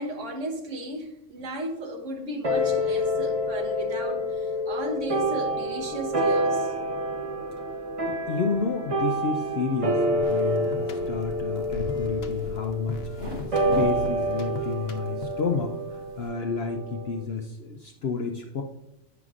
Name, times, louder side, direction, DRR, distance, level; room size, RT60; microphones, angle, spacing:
voice 1, 0.0-6.7, right 1 dB, 65° right, 1.4 m, -34 dB
sound 1, 2.4-17.2, equal, 30° right, 0.9 m, -28 dB
voice 2, 8.1-13.0 13.5-15.7 16.2-18.6, left 5 dB, 60° left, 0.7 m, -30 dB
sound 2, 10.1-16.3, left 1 dB, 80° right, 3.4 m, -40 dB
sound 3, 10.2-15.6, left 3 dB, 80° left, 1.1 m, -42 dB
9.3 x 5.9 x 2.4 m
omnidirectional pair, 1.4 m